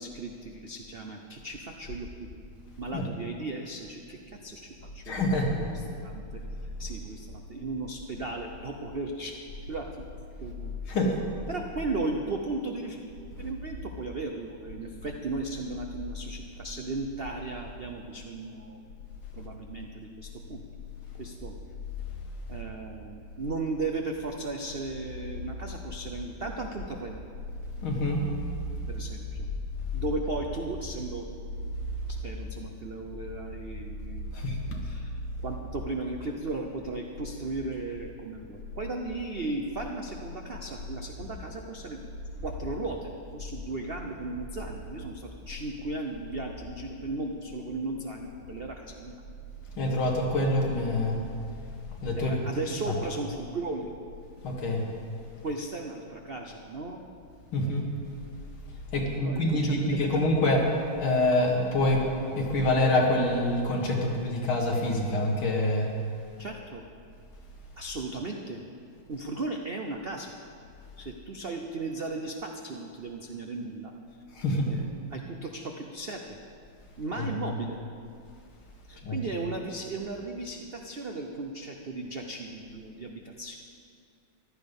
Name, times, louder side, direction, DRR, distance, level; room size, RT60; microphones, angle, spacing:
voice 1, 0.0-2.1 2.8-4.7 4.9-6.4 6.8-9.4 9.7-10.0 10.4-10.8 11.5-13.0 13.4-18.8 19.3-20.6 21.1-21.5 22.5-27.2 28.9-29.5 29.9-31.4 32.2-35.1 35.4-42.0 42.4-49.2 52.2-53.9 55.4-57.0 59.2-60.1 66.4-66.8 67.8-68.6 69.1-70.3 71.0-73.9 74.7-76.4 77.0-77.8 78.9-83.6, right 2 dB, 65° right, 2 dB, 0.5 m, -36 dB
voice 2, 5.1-5.6 10.9-11.1 27.8-28.2 34.3-34.6 49.8-51.2 52.0-52.3 52.9-53.0 54.4-54.8 57.5-57.9 58.9-60.6 61.0-62.1 62.4-65.9 74.3-74.7 77.2-77.3 79.0-79.2, left 1 dB, 80° left, 0 dB, 2.6 m, -26 dB
15.0 x 11.5 x 5.4 m, 2.4 s
omnidirectional pair, 2.2 m